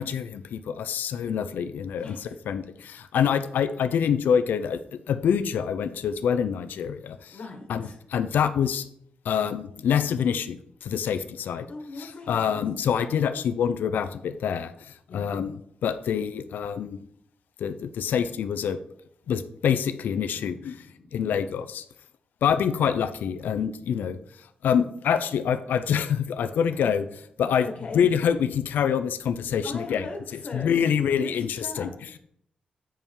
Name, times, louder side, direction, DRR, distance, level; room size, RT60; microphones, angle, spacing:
voice 1, 0.0-4.8 5.1-7.4 7.7-8.9 9.2-11.7 12.0-17.0 17.6-18.8 19.3-20.8 21.1-21.8 22.4-27.7 27.9-30.1 30.5-32.2, left 8 dB, 85° left, 10 dB, 0.6 m, -26 dB
voice 2, 2.0-2.4 7.3-8.0 11.7-12.5 15.1-15.3 20.3-21.2 27.6-28.0 29.6-31.9, left 3 dB, 45° left, 3 dB, 1.6 m, -40 dB
8.8 x 5.5 x 4.7 m, 0.68 s
wide cardioid pair, 145°, 3 cm